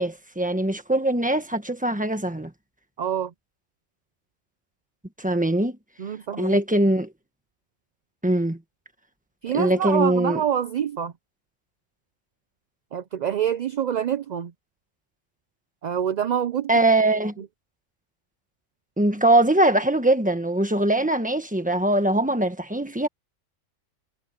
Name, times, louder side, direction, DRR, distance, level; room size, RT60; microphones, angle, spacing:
voice 1, 0.0-2.5 5.2-5.8 6.4-7.1 8.2-8.6 9.5-10.4 16.7-17.3 19.0-23.1, right 1 dB, 5° right, 1.4 m, -22 dB
voice 2, 3.0-3.3 6.0-6.6 9.4-11.1 12.9-14.5 15.8-16.7, right 9 dB, 55° right, 0.5 m, -26 dB
omnidirectional pair, 1.3 m